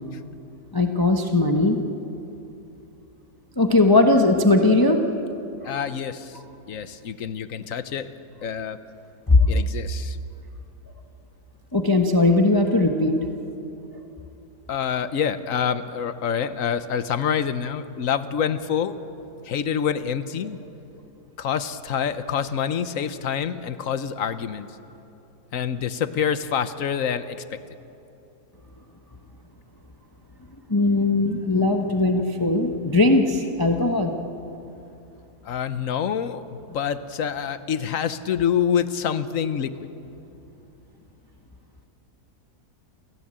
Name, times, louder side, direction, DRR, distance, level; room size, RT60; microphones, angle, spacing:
voice 1, 0.7-1.8 3.6-5.0 5.6-5.8 9.3-9.4 11.7-13.2 30.7-34.1, left 2 dB, 15° left, 4 dB, 1.0 m, -19 dB
voice 2, 5.6-6.4 6.7-8.1 8.4-8.8 9.5-10.2 14.7-19.0 19.4-20.6 21.4-24.7 25.5-27.4 35.4-39.7, left 8 dB, 60° left, 12 dB, 1.2 m, -26 dB
29.0 x 15.5 x 8.8 m, 2.9 s
omnidirectional pair, 1.7 m